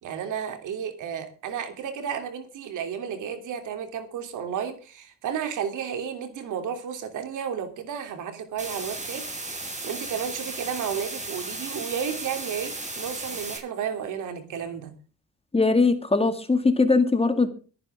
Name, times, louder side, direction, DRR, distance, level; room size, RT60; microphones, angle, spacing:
voice 1, 0.0-15.0, right 8 dB, 80° right, 7 dB, 3.1 m, -32 dB
sound 1, 8.6-13.6, right 2 dB, 25° right, 7.7 m, -35 dB
voice 2, 15.5-17.5, left 3 dB, 20° left, 9 dB, 2.1 m, -20 dB
23.0 x 9.8 x 3.6 m, 0.36 s
cardioid pair, 90°, 30 cm